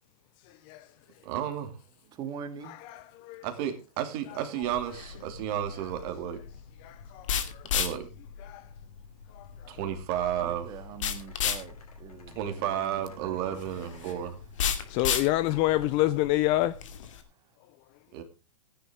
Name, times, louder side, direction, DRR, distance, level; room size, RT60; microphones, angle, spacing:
voice 1, 1.2-1.7 3.4-6.4 7.7-8.1 9.7-11.0 12.3-14.4 18.1-18.2, right 10 dB, 35° right, 2.5 m, -32 dB
voice 2, 2.1-2.8 10.4-14.2, right 7 dB, 20° right, 1.9 m, -43 dB
voice 3, 2.6-3.4 6.8-7.6 8.4-8.6 9.4-9.5 14.9-16.8, left 16 dB, 25° left, 0.5 m, -28 dB
sound 1, 4.6-17.2, left 8 dB, 60° left, 2.4 m, -34 dB
sound 2, 10.5-10.6 11.0-14.0 14.8-16.2, left 5 dB, 85° left, 6.2 m, -57 dB
15.0 x 10.5 x 3.6 m
hypercardioid pair, 145°, 19 cm